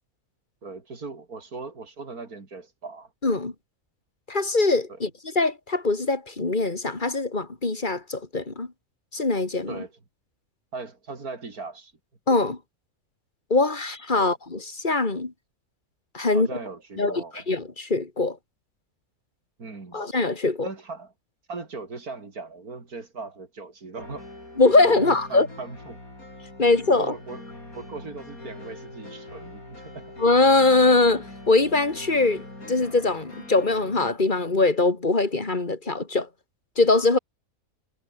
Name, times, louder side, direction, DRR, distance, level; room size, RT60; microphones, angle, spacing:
voice 1, 0.6-3.1 4.9-5.0 9.7-10.0 10.7-11.9 14.2-14.3 16.3-17.5 19.6-20.0 20.6-21.1 21.5-24.3 24.9-26.0 27.0-27.4 27.7-30.1, right 3 dB, 80° right, 4.0 m, -38 dB
voice 2, 3.2-3.5 4.3-5.1 5.3-8.7 9.1-9.8 12.3-12.6 13.5-15.3 16.1-16.5 17.0-18.4 19.9-20.7 24.6-25.5 26.6-27.1 30.2-36.3 36.8-37.2, left 3 dB, 30° left, 2.8 m, -22 dB
sound 1, 24.0-34.1, left 2 dB, 70° left, 8.2 m, -42 dB
omnidirectional pair, 1.6 m